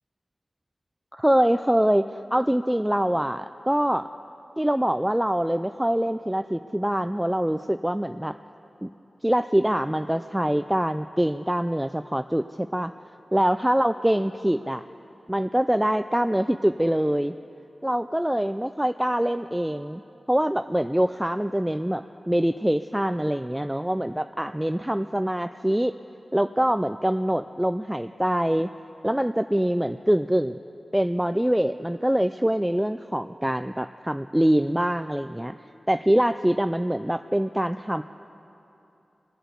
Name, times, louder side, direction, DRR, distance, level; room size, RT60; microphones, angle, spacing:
voice 1, 1.1-4.1 4.6-8.4 8.8-8.9 9.2-12.9 13.3-14.8 15.3-17.4 17.8-20.0 20.3-26.0 26.3-28.7 29.0-30.6 30.9-35.5 35.9-38.0, equal, 10° right, 10 dB, 0.3 m, -24 dB
20.5 x 7.8 x 8.2 m, 3.0 s
cardioid pair, 40°, 0 cm